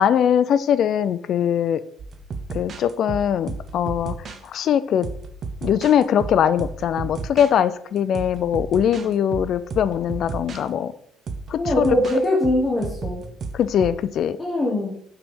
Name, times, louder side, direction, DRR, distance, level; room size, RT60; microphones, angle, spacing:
voice 1, 0.0-1.8 2.5-4.1 4.4-5.1 5.6-10.9 11.5-12.0 13.5-14.4, left 9 dB, 55° left, 15 dB, 0.3 m, -21 dB
sound 1, 2.0-4.5 5.0-7.5 8.0-10.6 11.3-14.0, right 4 dB, 45° right, 0.7 m, -33 dB
voice 2, 11.6-13.2 14.4-15.0, left 1 dB, 20° left, -4 dB, 1.1 m, -22 dB
5.7 x 3.3 x 5.4 m, 0.70 s
cardioid pair, 115°, 0 cm